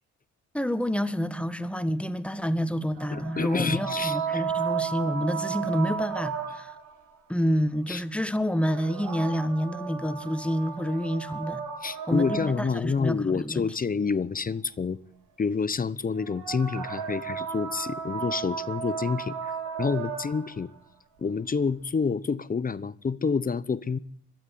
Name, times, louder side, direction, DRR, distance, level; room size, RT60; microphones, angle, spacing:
voice 1, 0.5-6.7 7.3-11.6 12.1-13.6, equal, 5° left, 1.5 m, -28 dB
sound 1, 3.0-6.9 8.4-13.0 16.1-20.6, right 7 dB, 90° right, 6.5 m, -34 dB
voice 2, 3.1-4.4 7.9-8.0 11.8-15.0 15.4-19.3 19.8-20.7 21.2-24.0, left 5 dB, 30° left, 0.9 m, -28 dB
22.5 x 13.0 x 9.4 m
cardioid pair, 90°, 30 cm